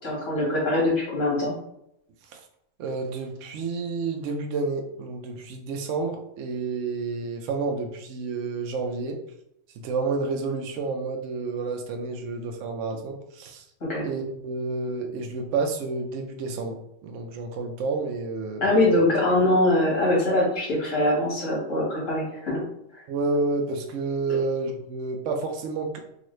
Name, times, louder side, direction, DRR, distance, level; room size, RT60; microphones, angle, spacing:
voice 1, 0.0-1.6 13.9-14.1 18.6-22.6 24.3-24.4, left 1 dB, 85° left, -4 dB, 1.9 m, -23 dB
voice 2, 2.8-9.2 9.8-13.6 14.0-18.8 23.1-26.0, right 3 dB, 80° right, 4 dB, 0.9 m, -30 dB
3.8 x 2.4 x 3.1 m, 0.77 s
omnidirectional pair, 1.3 m